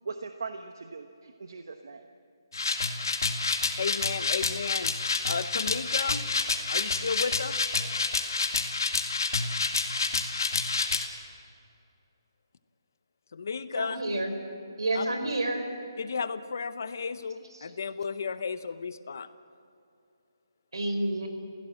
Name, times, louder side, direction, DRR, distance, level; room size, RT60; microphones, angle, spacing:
voice 1, 0.0-2.1, right 4 dB, 55° right, 6 dB, 1.1 m, -40 dB
sound 1, 2.5-11.0, left 4 dB, 55° left, 2.1 m, -29 dB
voice 2, 3.7-4.9 5.3-6.3 6.7-7.6 13.3-14.0 14.9-15.1 16.0-19.3, left 5 dB, 40° left, 13 dB, 0.8 m, -33 dB
voice 3, 13.7-14.3 14.8-15.6 20.7-21.3, right 1 dB, 75° right, 5 dB, 4.8 m, -29 dB
29.0 x 16.5 x 7.7 m, 2.6 s
hypercardioid pair, 175°, 2 cm